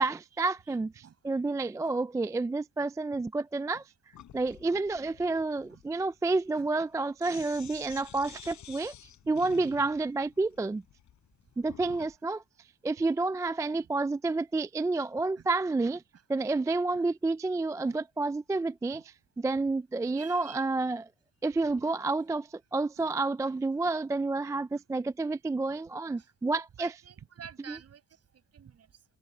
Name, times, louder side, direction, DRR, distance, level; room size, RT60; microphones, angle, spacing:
voice 1, 0.0-3.8 4.3-8.9 9.3-10.8 11.6-12.4 12.8-16.0 16.3-21.1 21.4-26.9 27.7-27.8, right 3 dB, 10° right, 0.3 m, -30 dB
Sink (filling or washing), 4.1-12.2, left 10 dB, 70° left, 7.0 m, -51 dB
voice 2, 20.1-20.6 23.0-23.1 26.2-26.3 26.8-28.0 28.5-28.9, right 8 dB, 55° right, 6.3 m, -49 dB
cardioid pair, 90°, 30 cm